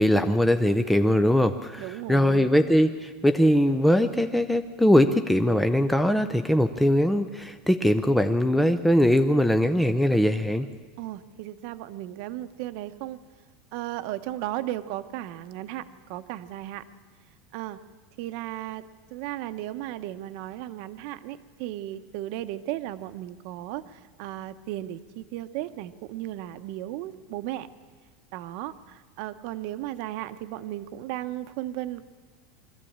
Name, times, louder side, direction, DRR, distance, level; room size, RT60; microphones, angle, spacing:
voice 1, 0.0-10.7, equal, ahead, 7 dB, 0.5 m, -21 dB
voice 2, 1.8-2.5 11.0-13.2 13.7-16.8 17.5-17.8 18.2-18.8 19.1-27.7 28.3-32.1, right 14 dB, 55° right, 11 dB, 0.9 m, -35 dB
22.5 x 14.0 x 8.7 m, 1.5 s
supercardioid pair, 170°, 0 cm